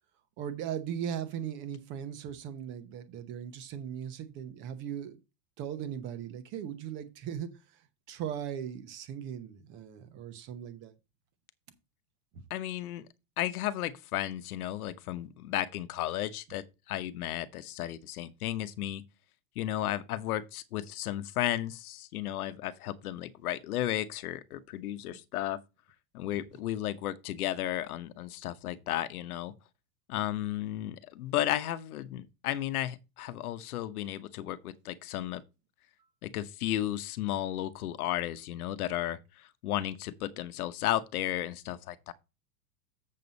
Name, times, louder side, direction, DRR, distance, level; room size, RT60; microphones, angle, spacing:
voice 1, 0.4-5.2 5.6-7.5 8.1-10.9 25.0-25.2, right 9 dB, 25° right, 0.9 m, -38 dB
voice 2, 12.5-13.1 13.4-19.0 19.5-25.6 26.1-29.5 30.1-35.4 36.2-42.1, left 13 dB, 65° left, 1.0 m, -34 dB
7.5 x 7.0 x 4.0 m
supercardioid pair, 175°, 49 cm